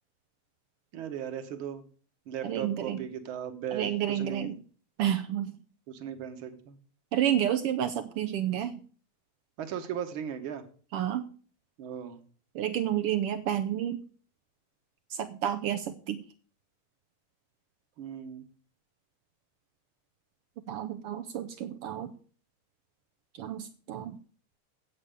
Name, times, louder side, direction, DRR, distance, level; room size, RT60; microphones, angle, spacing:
voice 1, 0.9-1.8 2.3-4.5 5.9-6.8 9.6-10.6 11.8-12.2 18.0-18.4, right 8 dB, 55° right, 8 dB, 1.7 m, -37 dB
voice 2, 2.4-3.0 3.7-4.6 5.0-5.6 7.1-8.7 10.9-11.2 12.5-14.0 15.1-16.2 20.7-22.1 23.4-24.2, right 10 dB, 80° right, 10 dB, 1.3 m, -30 dB
8.9 x 8.4 x 6.8 m, 0.42 s
omnidirectional pair, 3.3 m